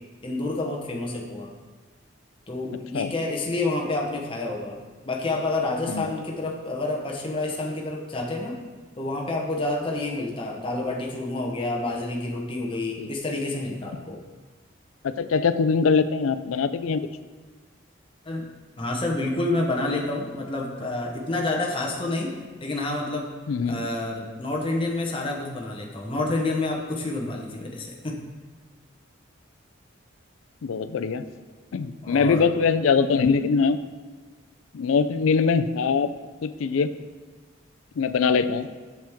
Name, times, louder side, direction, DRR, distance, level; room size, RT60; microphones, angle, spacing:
voice 1, 0.2-1.5 2.5-4.8 5.0-8.6 9.0-14.2 18.2-18.5 18.8-23.3 23.7-28.2 32.0-32.5, left 2 dB, 25° left, 0 dB, 0.9 m, -28 dB
voice 2, 15.0-17.1 23.5-23.9 30.6-31.3 31.7-33.8 34.7-36.1 36.4-36.9 38.0-38.7, left 5 dB, 90° left, 12 dB, 0.4 m, -22 dB
7.4 x 7.1 x 3.5 m, 1.4 s
head